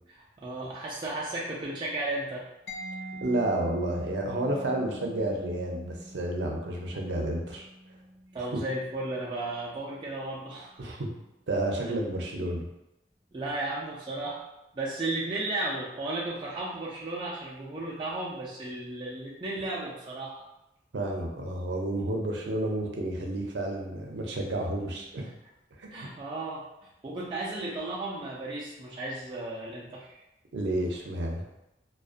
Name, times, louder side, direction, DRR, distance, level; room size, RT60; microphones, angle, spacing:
voice 1, 0.4-2.5 8.3-10.9 13.3-14.4 14.7-20.4 25.9-26.6 27.0-30.2, right 2 dB, 25° right, -6 dB, 0.3 m, -34 dB
Mallet percussion, 2.7-10.2, equal, 85° left, 0.4 m, -45 dB
voice 2, 3.2-7.6 10.8-11.1 11.5-12.7 20.9-25.3 25.8-25.9 30.5-31.4, right 1 dB, 85° right, 0 dB, 0.5 m, -30 dB
2.5 x 2.1 x 2.4 m, 0.90 s
head